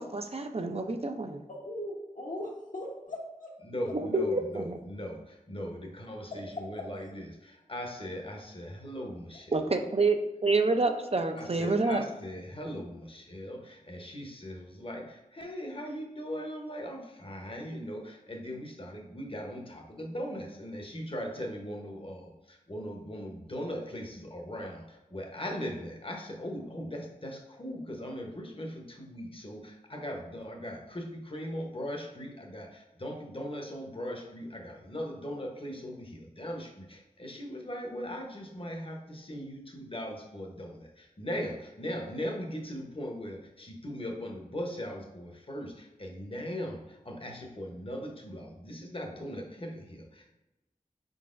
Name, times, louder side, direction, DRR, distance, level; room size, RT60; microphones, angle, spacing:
voice 1, 0.0-1.4 3.9-4.8 9.5-12.0, right 3 dB, 45° right, 5 dB, 0.5 m, -28 dB
voice 2, 1.5-3.5 3.8-4.2 6.3-6.4 6.8-6.9, left 1 dB, 70° left, -3 dB, 1.1 m, -39 dB
voice 3, 3.6-9.8 11.3-50.4, equal, 40° left, 1 dB, 0.9 m, -39 dB
4.5 x 3.9 x 2.5 m, 1.0 s
wide cardioid pair, 45°, 14 cm